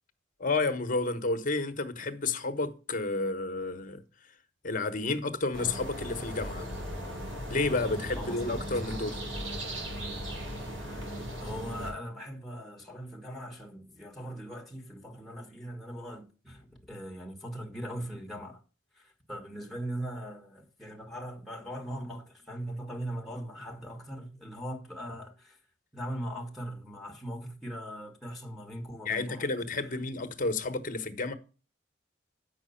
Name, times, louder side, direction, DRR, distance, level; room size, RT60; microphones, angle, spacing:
voice 1, 0.4-4.0 4.6-6.7 7.5-9.2 29.0-31.3, left 3 dB, 45° left, 1.2 m, -31 dB
sound 1, 5.5-11.9, equal, 90° right, 5.6 m, -37 dB
voice 2, 8.2-8.6 10.8-11.1 11.4-18.6 18.9-25.6 25.9-29.5, equal, ahead, 1.6 m, -40 dB
8.4 x 6.0 x 5.6 m
head